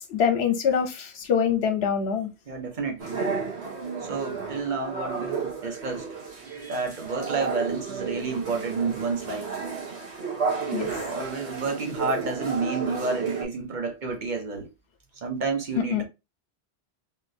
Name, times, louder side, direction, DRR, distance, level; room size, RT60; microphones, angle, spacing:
voice 1, 0.0-2.3 10.7-10.9 15.9-16.0, left 7 dB, 70° left, 1.0 m, -24 dB
voice 2, 2.5-3.2 4.0-6.1 6.5-9.5 10.5-10.6 11.0-14.7 15.2-16.0, right 4 dB, 50° right, 0.9 m, -30 dB
sound 1, 3.0-13.5, right 5 dB, 80° right, 1.3 m, -32 dB
3.5 x 2.4 x 2.6 m
omnidirectional pair, 1.1 m